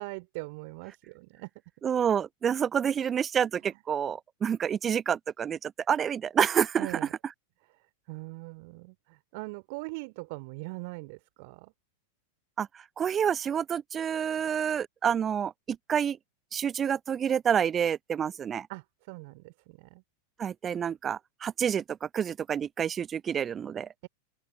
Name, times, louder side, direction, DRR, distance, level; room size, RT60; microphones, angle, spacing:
voice 1, 0.0-1.5 6.8-7.1 8.1-11.7 18.7-20.0, right 28 dB, 45° right, 3.3 m, -41 dB
voice 2, 1.8-7.0 12.6-12.7 13.0-16.2 16.5-18.7 20.4-23.9, right 8 dB, 25° right, 1.1 m, -28 dB
open air
figure-of-eight pair, 90°, 0 cm